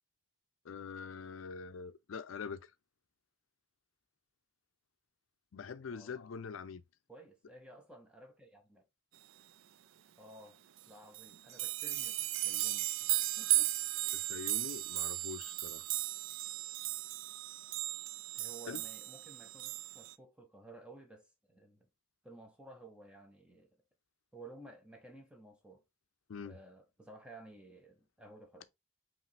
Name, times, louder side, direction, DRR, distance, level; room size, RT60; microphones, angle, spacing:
voice 1, 0.6-2.7 5.5-6.8 14.1-15.9 18.7-18.8 26.3-26.5, left 5 dB, 85° left, 0.5 m, -44 dB
voice 2, 5.9-6.2 7.1-8.8 10.2-13.1 13.4-13.7 18.3-21.9 22.2-23.8 24.3-25.8 26.4-28.7, right 2 dB, 5° right, 0.8 m, -55 dB
sound 1, 10.8-10.9 11.1-20.1, right 17 dB, 80° right, 0.4 m, -36 dB
5.0 x 3.0 x 3.3 m
head